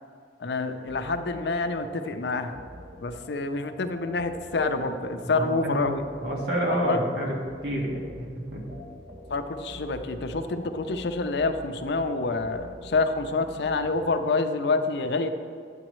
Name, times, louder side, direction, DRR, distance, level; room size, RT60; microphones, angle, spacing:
voice 1, 0.4-2.5 3.0-6.1 6.7-7.0 9.3-15.3, left 3 dB, 70° left, 8 dB, 0.5 m, -27 dB
sound 1, 0.9-14.0, equal, 45° right, 1.5 m, -45 dB
voice 2, 5.3-5.9 6.2-7.3 7.6-8.0 8.5-8.6, equal, 75° right, -2 dB, 1.7 m, -28 dB
8.7 x 8.2 x 3.1 m, 2.1 s
head